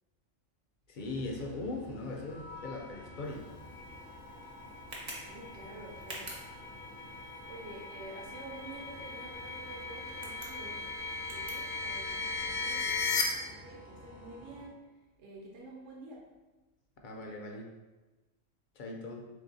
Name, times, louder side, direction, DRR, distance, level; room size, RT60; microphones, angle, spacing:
voice 1, 0.9-3.5 17.0-17.7 18.8-19.3, left 2 dB, 60° left, 0 dB, 0.5 m, -39 dB
sound 1, 1.0-14.7, equal, ahead, 0.4 m, -52 dB
sound 2, 2.3-13.2, left 4 dB, 80° left, 0.9 m, -39 dB
Tick, 3.2-12.4, right 1 dB, 40° right, 0.8 m, -51 dB
voice 2, 5.1-6.3 7.5-10.9 11.3-14.8 15.2-16.2, right 2 dB, 70° right, -3 dB, 1.0 m, -49 dB
3.4 x 2.7 x 3.8 m, 1.1 s
omnidirectional pair, 1.3 m